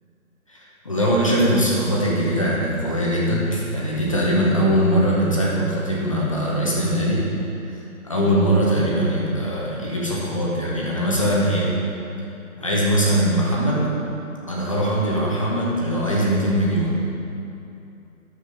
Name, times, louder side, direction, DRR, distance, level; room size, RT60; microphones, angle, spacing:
voice 1, 0.5-7.3 7.7-11.8 12.6-13.9 14.5-17.0, equal, 20° left, -4 dB, 1.0 m, -21 dB
9.8 x 7.4 x 5.1 m, 2.7 s
figure-of-eight pair, 165°, 44 cm